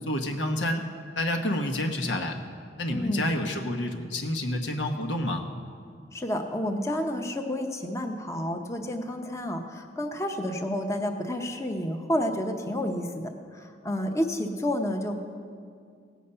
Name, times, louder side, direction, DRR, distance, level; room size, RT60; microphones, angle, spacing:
voice 1, 0.1-0.8 1.2-2.4 2.8-5.4, left 1 dB, 85° left, 4 dB, 1.2 m, -29 dB
voice 2, 2.9-3.3 6.1-15.2, left 1 dB, 15° left, 3 dB, 0.8 m, -30 dB
17.5 x 8.2 x 5.6 m, 2.2 s
head